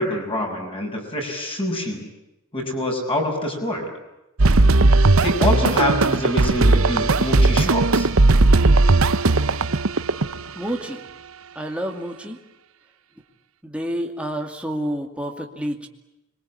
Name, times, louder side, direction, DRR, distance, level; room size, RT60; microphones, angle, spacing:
voice 1, 0.0-2.1 2.5-3.9 4.5-4.7 5.2-8.1, left 1 dB, 25° left, 2 dB, 6.5 m, -25 dB
sound 1, 4.4-10.5, right 2 dB, 70° right, 0.9 m, -17 dB
voice 2, 10.6-11.0 11.6-12.4 13.6-15.9, equal, 5° right, 1 dB, 2.4 m, -29 dB
26.5 x 23.5 x 8.8 m, 0.95 s
head